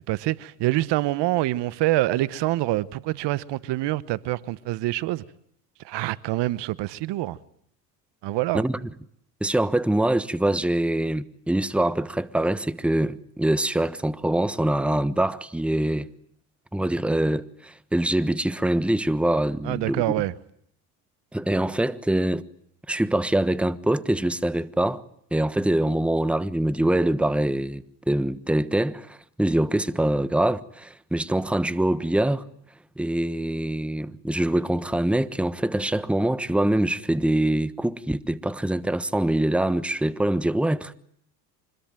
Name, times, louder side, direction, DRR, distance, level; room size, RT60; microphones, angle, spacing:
voice 1, 0.1-5.2 5.8-7.4 8.2-8.6 19.6-20.3, right 17 dB, 60° right, 1.1 m, -26 dB
voice 2, 9.4-16.1 16.7-20.0 21.3-22.4 22.9-25.0 25.3-32.4 33.0-40.9, right 1 dB, ahead, 1.2 m, -24 dB
25.5 x 21.5 x 9.1 m
hypercardioid pair, 75°, 47 cm